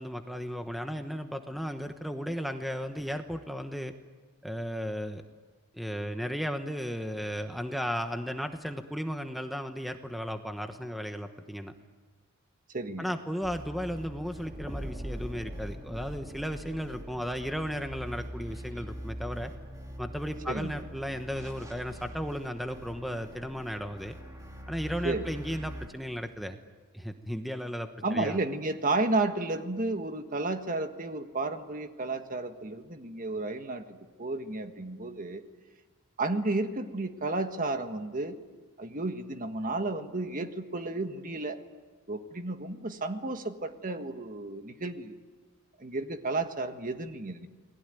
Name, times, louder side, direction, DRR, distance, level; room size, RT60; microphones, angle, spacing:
voice 1, 0.0-3.9 4.4-5.2 5.7-11.7 13.0-19.5 20.0-24.1 24.7-26.6 26.9-28.4, equal, ahead, 6 dB, 1.1 m, -35 dB
voice 2, 12.7-13.1 20.5-20.7 25.0-25.3 28.0-35.4 36.2-38.4 38.8-41.6 42.1-45.2 45.8-47.5, right 2 dB, 40° right, 7 dB, 1.6 m, -32 dB
sound 1, 13.4-25.9, equal, 15° right, 3.0 m, -42 dB
29.0 x 20.0 x 9.2 m, 1.4 s
head